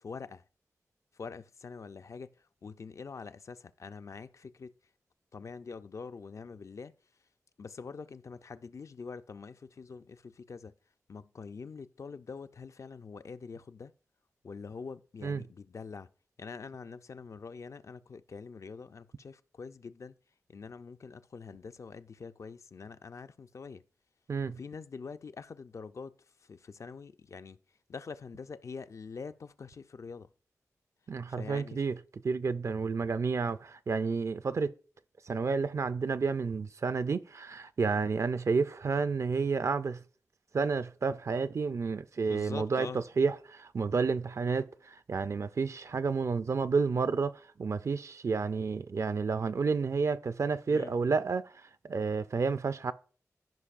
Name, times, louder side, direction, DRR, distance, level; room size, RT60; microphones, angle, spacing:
voice 1, 0.0-0.4 1.2-2.3 2.6-4.7 5.3-6.9 7.6-10.7 11.1-13.9 14.4-16.1 16.4-20.1 20.5-23.8 24.6-26.2 26.5-27.6 27.9-30.3 31.3-31.8 42.3-43.0 50.7-50.9, left 5 dB, 60° left, 0.4 m, -45 dB
voice 2, 24.3-24.6 31.1-32.0 32.2-34.7 35.3-40.0 40.5-51.5 51.9-52.9, right 4 dB, 60° right, 0.4 m, -30 dB
14.5 x 5.2 x 2.5 m
cardioid pair, 60°, 6 cm